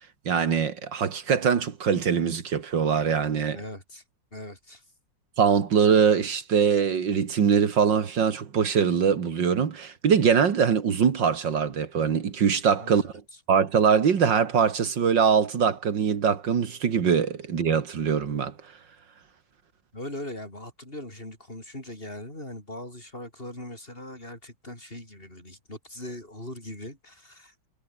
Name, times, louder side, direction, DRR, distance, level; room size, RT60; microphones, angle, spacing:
voice 1, 0.3-3.6 5.4-13.1 13.5-18.5, right 6 dB, 75° right, 2.5 m, -23 dB
voice 2, 3.5-4.0 4.3-4.9 12.8-13.1 19.9-27.7, left 1 dB, 30° left, 6.9 m, -40 dB
omnidirectional pair, 2.0 m